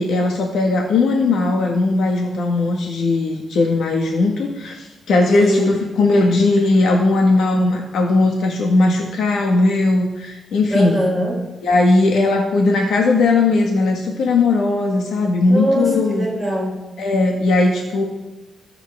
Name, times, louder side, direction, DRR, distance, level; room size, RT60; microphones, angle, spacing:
voice 1, 0.0-11.0 11.6-16.3 17.0-18.0, left 3 dB, 90° left, 1 dB, 1.6 m, -18 dB
voice 2, 5.3-5.7 10.7-11.3 15.5-16.8, equal, 5° left, -4 dB, 4.7 m, -21 dB
21.5 x 8.0 x 3.5 m, 1.1 s
wide cardioid pair, 180°, 0 cm